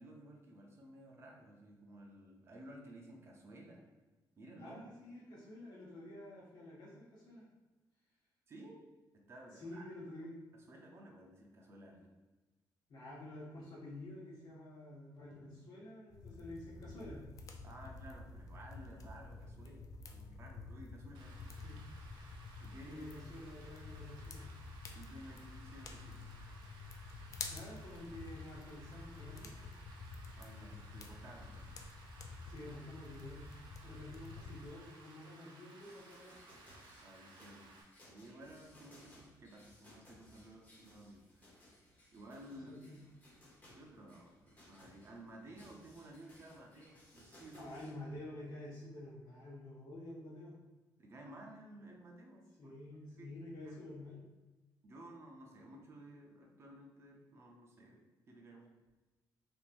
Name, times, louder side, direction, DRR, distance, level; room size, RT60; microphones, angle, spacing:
voice 1, 0.0-3.8 4.4-4.8 8.5-8.9 9.3-9.9 10.5-12.1 17.6-21.5 22.6-23.1 24.9-26.3 30.4-31.7 37.0-37.8 38.1-41.6 42.1-42.8 43.7-47.7 51.0-52.7 53.1-53.4 53.6-53.8 54.8-58.7, right 1 dB, 35° right, 0 dB, 0.6 m, -55 dB
voice 2, 4.6-7.4 9.6-10.4 12.9-17.2 21.6-21.8 22.8-24.5 27.5-29.7 32.5-33.5 33.8-36.4 42.6-43.0 47.5-50.6 52.6-54.2, left 1 dB, 65° left, -6 dB, 1.0 m, -49 dB
sound 1, 16.1-34.7, left 3 dB, 45° left, 0.3 m, -50 dB
Rain, 21.1-37.8, right 2 dB, 90° right, 0.6 m, -59 dB
sound 2, 35.8-47.9, left 1 dB, 20° left, 1.0 m, -62 dB
3.5 x 2.9 x 2.5 m, 1.2 s
cardioid pair, 145°, 8 cm